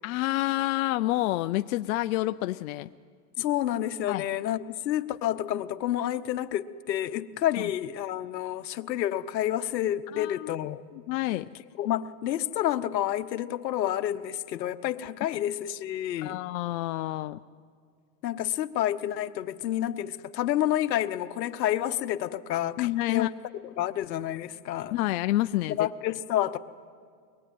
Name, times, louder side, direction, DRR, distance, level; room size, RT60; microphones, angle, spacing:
voice 1, 0.0-2.9 4.1-4.2 10.1-10.5 10.9-11.5 16.2-17.4 22.8-23.3 24.9-25.8, left 17 dB, 60° left, 0.6 m, -28 dB
voice 2, 3.4-10.8 11.8-16.4 18.2-23.3 23.6-24.9 25.8-26.6, left 12 dB, 80° left, 1.2 m, -29 dB
24.0 x 21.5 x 9.3 m
hypercardioid pair, 125°, 50 cm